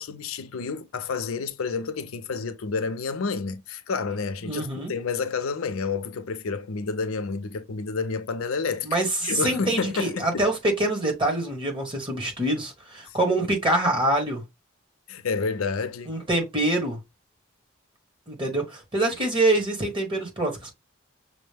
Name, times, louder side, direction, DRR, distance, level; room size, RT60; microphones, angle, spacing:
voice 1, 0.0-8.9 9.2-10.5 15.1-16.1, left 4 dB, 85° left, 0.5 m, -29 dB
voice 2, 4.4-4.9 8.8-14.4 16.1-17.0 18.3-20.7, right 1 dB, 25° right, 1.4 m, -25 dB
6.1 x 2.1 x 3.4 m
head